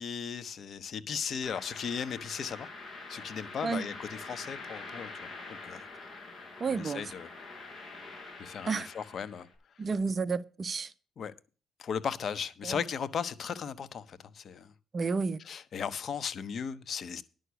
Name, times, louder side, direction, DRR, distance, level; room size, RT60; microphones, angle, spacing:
voice 1, 0.0-2.7 3.1-5.1 5.6-5.8 6.7-7.3 8.4-9.5 11.2-11.3 11.8-14.7 15.4-17.2, left 7 dB, 55° left, 1.1 m, -36 dB
sound 1, 1.4-9.5, left 3 dB, 25° left, 6.6 m, -45 dB
voice 2, 6.6-7.0 8.7-8.9 9.8-10.9 12.6-12.8 14.9-15.4, right 4 dB, 40° right, 0.7 m, -31 dB
11.0 x 6.5 x 7.0 m
cardioid pair, 90°, 0 cm